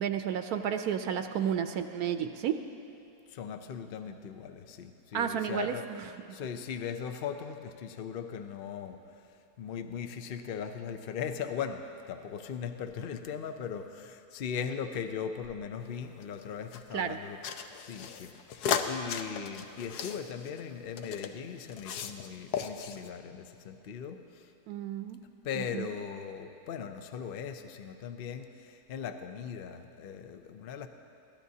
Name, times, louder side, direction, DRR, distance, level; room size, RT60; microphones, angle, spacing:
voice 1, 0.0-2.6 5.1-6.1 16.9-17.2 24.7-25.2 25.6-25.9, right 8 dB, 75° right, 8 dB, 1.1 m, -32 dB
voice 2, 3.3-5.9 6.3-17.4 17.8-24.5 25.4-30.9, left 7 dB, 60° left, 7 dB, 0.6 m, -39 dB
sound 1, 15.8-16.8 17.4-21.3 21.7-22.3 22.5-23.1, left 7 dB, 80° left, 1.2 m, -35 dB
22.5 x 15.5 x 2.8 m, 2.8 s
omnidirectional pair, 1.7 m